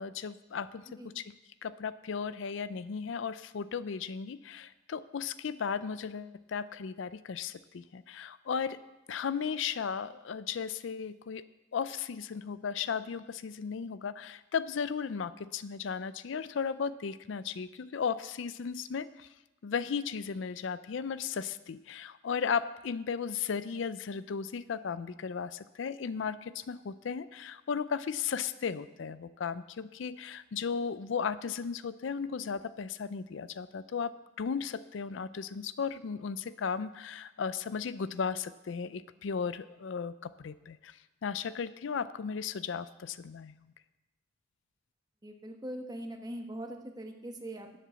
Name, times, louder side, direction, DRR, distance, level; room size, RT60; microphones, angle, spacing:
voice 1, 0.0-0.8 1.1-1.3 1.6-8.8 9.1-11.4 11.7-19.3 19.6-34.1 34.4-43.5, left 6 dB, 70° left, 15 dB, 0.4 m, -35 dB
voice 2, 45.2-47.8, right 1 dB, 20° right, 3 dB, 1.2 m, -41 dB
11.0 x 7.4 x 6.9 m, 0.99 s
head